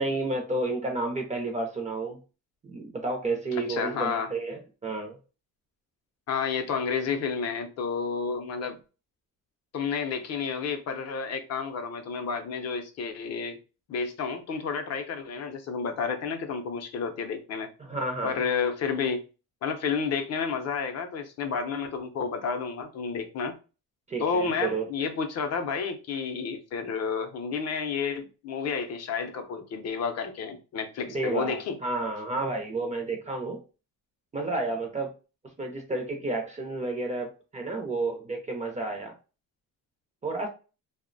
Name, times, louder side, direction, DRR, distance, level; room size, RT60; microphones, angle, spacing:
voice 1, 0.0-2.2 2.6-5.2 17.8-18.4 24.1-24.8 31.1-33.6 34.3-35.1 35.6-39.1 40.2-40.5, right 2 dB, 20° right, 0.4 m, -31 dB
voice 2, 3.7-4.3 6.3-8.8 9.7-13.6 13.9-17.7 18.2-19.2 19.6-23.6 24.2-31.8, left 5 dB, 45° left, 0.5 m, -30 dB
2.5 x 2.0 x 2.5 m
cardioid pair, 145°, 35 cm